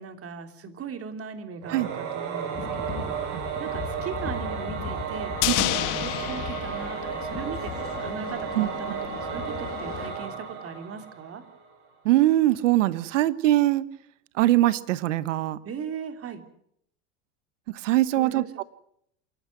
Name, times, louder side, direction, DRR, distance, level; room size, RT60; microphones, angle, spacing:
voice 1, 0.0-3.2 3.6-11.4 15.6-16.4 18.1-18.6, right 6 dB, 35° right, 7 dB, 3.3 m, -38 dB
Singing / Musical instrument, 1.6-11.6, right 6 dB, 60° right, 5.5 m, -34 dB
sound 1, 2.5-10.1, left 5 dB, 35° left, 5.3 m, -39 dB
sound 2, 5.4-7.8 8.1-8.2, left 17 dB, 55° left, 1.6 m, -29 dB
voice 2, 12.0-13.8 14.4-15.6 17.8-18.6, right 15 dB, 75° right, 16 dB, 1.2 m, -22 dB
27.5 x 12.0 x 9.4 m, 0.72 s
hypercardioid pair, 95°, 37 cm